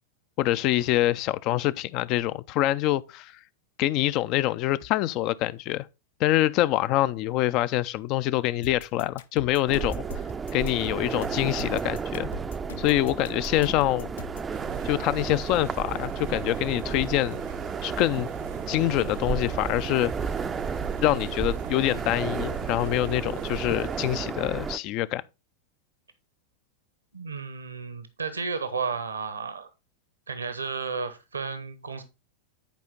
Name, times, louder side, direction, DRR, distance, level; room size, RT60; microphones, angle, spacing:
voice 1, 0.4-3.3 3.8-5.9 6.2-9.9 10.5-12.3 12.8-14.1 14.8-17.4 17.8-18.3 18.7-20.1 21.0-25.2, left 15 dB, 40° left, 0.4 m, -25 dB
sound 1, 8.6-14.5, left 5 dB, 65° left, 0.8 m, -41 dB
sound 2, 9.7-24.8, right 6 dB, 20° right, 0.5 m, -33 dB
sound 3, 14.5-24.2, right 9 dB, 55° right, 0.7 m, -40 dB
voice 2, 27.1-29.7 30.3-32.0, right 5 dB, 75° right, 1.0 m, -33 dB
10.5 x 5.0 x 3.8 m
figure-of-eight pair, 90°, 0 cm